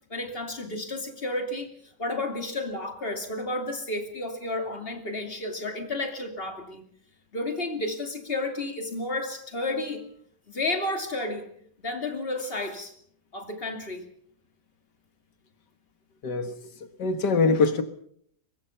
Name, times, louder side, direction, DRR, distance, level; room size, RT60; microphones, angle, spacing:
voice 1, 0.1-6.8 7.3-10.0 10.5-11.5 11.8-12.9 13.3-14.1, left 2 dB, 35° left, 5 dB, 2.8 m, -32 dB
voice 2, 16.2-16.5 17.0-17.8, left 4 dB, 80° left, 9 dB, 2.1 m, -23 dB
24.0 x 20.5 x 5.7 m, 0.66 s
omnidirectional pair, 1.8 m